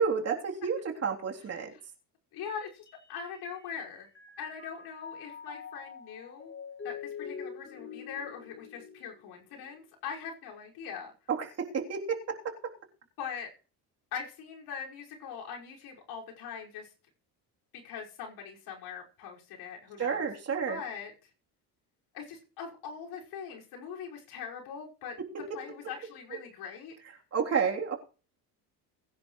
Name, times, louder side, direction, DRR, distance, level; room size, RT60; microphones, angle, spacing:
voice 1, 0.0-1.7 11.3-12.7 20.0-20.8 25.5-25.6 27.3-27.9, right 6 dB, 40° right, 0 dB, 3.5 m, -30 dB
voice 2, 1.4-1.8 2.3-4.1 4.4-6.5 6.8-11.1 13.2-13.5 14.1-16.9 17.7-20.3 20.7-21.3 22.1-25.2 25.5-26.9, left 6 dB, 75° left, -1 dB, 5.8 m, -42 dB
Mallet percussion, 2.4-3.8 4.1-9.6, left 7 dB, 30° left, 3.0 m, -45 dB
21.5 x 10.5 x 3.3 m, 0.36 s
cardioid pair, 125°, 40 cm